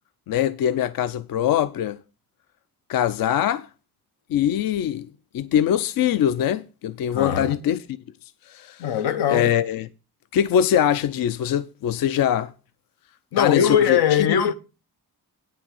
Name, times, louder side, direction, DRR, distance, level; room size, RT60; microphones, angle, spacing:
voice 1, 0.3-2.0 2.9-3.7 4.3-5.1 5.3-7.8 8.5-8.9 9.3-9.9 10.3-12.5 13.4-14.4, left 10 dB, 65° left, 0.5 m, -22 dB
voice 2, 7.1-7.6 8.8-9.5 13.3-14.5, left 9 dB, 90° left, 1.0 m, -21 dB
9.1 x 6.2 x 6.3 m
cardioid pair, 135°, 38 cm